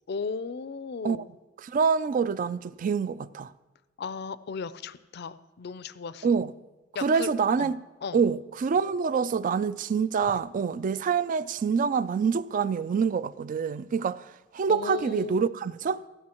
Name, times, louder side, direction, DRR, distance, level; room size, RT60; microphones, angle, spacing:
voice 1, 0.1-1.3 4.0-6.3 6.9-7.3 7.6-7.7 8.0-8.2 14.7-15.5, left 5 dB, 60° left, 0.5 m, -35 dB
voice 2, 1.6-3.5 6.2-6.5 7.0-7.8 8.1-14.3 14.5-16.0, right 6 dB, 45° right, 0.3 m, -26 dB
16.5 x 12.5 x 3.0 m
head